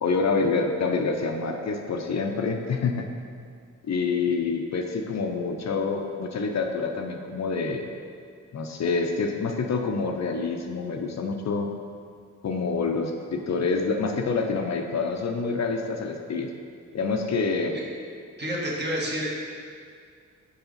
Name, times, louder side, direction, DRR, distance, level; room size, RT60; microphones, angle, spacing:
voice 1, 0.0-3.1 3.4-3.5 3.8-7.9 8.5-11.7 12.4-16.5 16.9-17.8, left 4 dB, 55° left, 4 dB, 0.6 m, -27 dB
voice 2, 18.4-19.3, equal, 35° right, -4 dB, 1.4 m, -28 dB
6.9 x 4.8 x 4.0 m, 2.2 s
cardioid pair, 95°, 32 cm